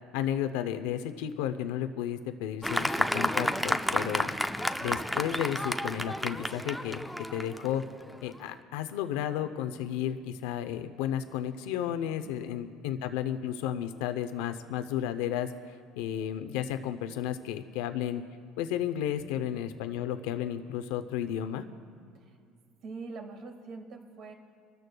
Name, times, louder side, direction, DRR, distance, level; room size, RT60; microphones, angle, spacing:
voice 1, 0.1-4.3 4.8-7.0 7.3-7.8 8.2-15.5 16.0-18.2 18.6-21.6, left 10 dB, 90° left, 9 dB, 0.6 m, -33 dB
Fireworks, 2.6-8.4, equal, ahead, 0.4 m, -31 dB
voice 2, 4.0-4.4 12.2-12.6 19.4-19.7 22.2-22.4 22.8-24.3, right 3 dB, 50° right, 4 dB, 1.7 m, -45 dB
27.5 x 13.0 x 2.3 m, 2.2 s
cardioid pair, 135°, 0 cm